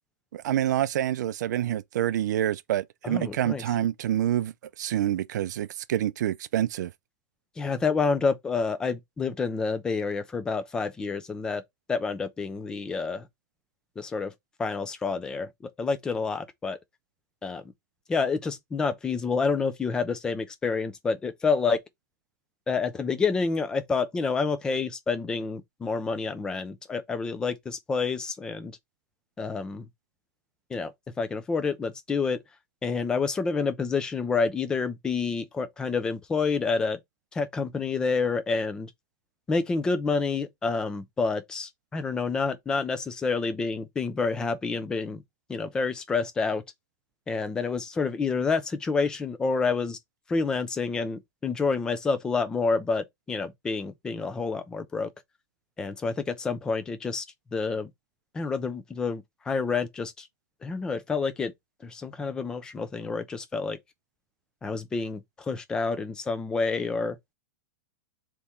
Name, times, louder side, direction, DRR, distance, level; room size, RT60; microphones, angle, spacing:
voice 1, 0.3-6.9, right 12 dB, 85° right, 0.4 m, -27 dB
voice 2, 3.0-3.6 7.6-11.6 11.9-13.3 14.0-14.3 14.6-15.5 15.8-16.8 17.4-17.7 18.1-21.8 22.7-28.8 29.4-29.9 30.7-30.9 31.2-32.4 32.8-37.0 37.3-38.9 39.5-45.2 45.5-46.6 47.3-50.0 50.3-55.1 55.8-57.2 57.5-57.9 58.3-60.3 60.6-61.5 61.8-63.8 64.6-67.2, left 4 dB, 10° left, 0.4 m, -28 dB
3.5 x 3.0 x 4.2 m
supercardioid pair, 170°, 9 cm